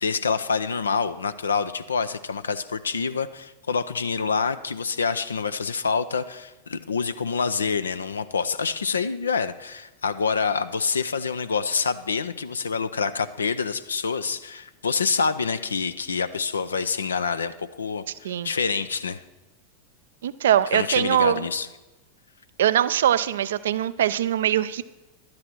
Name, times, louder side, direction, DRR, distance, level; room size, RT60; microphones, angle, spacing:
voice 1, 0.0-19.2 20.7-21.7, left 5 dB, 70° left, 12 dB, 0.5 m, -27 dB
voice 2, 20.2-21.4 22.6-24.8, right 10 dB, 60° right, 15 dB, 0.4 m, -22 dB
11.5 x 10.5 x 4.4 m, 1.0 s
figure-of-eight pair, 90°, 0 cm